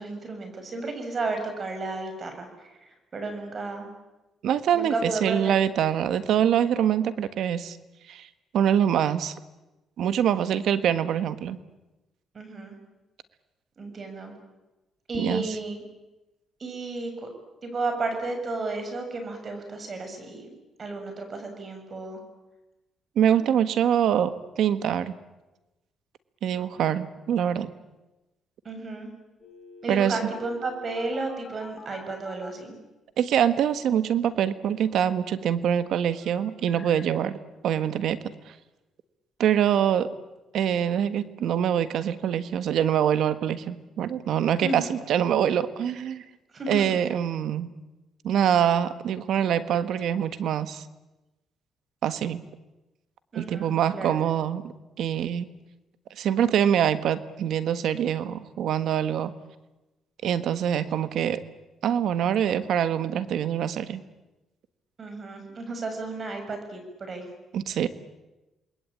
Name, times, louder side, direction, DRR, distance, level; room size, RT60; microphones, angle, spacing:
voice 1, 0.0-3.9 4.7-5.5 12.3-12.8 13.8-14.3 15.1-15.8 16.6-17.3 17.6-20.5 20.8-22.2 28.6-29.1 29.8-32.8 44.6-44.9 46.5-46.9 53.3-54.2 65.0-67.3, right 3 dB, 45° right, 6 dB, 7.1 m, -33 dB
voice 2, 4.4-7.8 8.1-8.3 8.5-9.3 10.0-11.6 15.1-15.5 23.1-25.1 26.4-27.7 29.9-30.3 33.2-37.4 37.6-38.2 39.4-40.1 40.5-46.2 46.7-47.7 48.2-50.8 52.0-52.4 53.3-54.7 55.0-55.5 56.2-59.4 60.2-61.4 61.8-64.0 67.5-67.9, right 9 dB, 75° right, 12 dB, 1.5 m, -24 dB
sound 1, 29.4-32.5 36.2-37.0, left 3 dB, 30° left, 3.6 m, -47 dB
28.5 x 21.0 x 8.8 m, 1.0 s
cardioid pair, 90°, 0 cm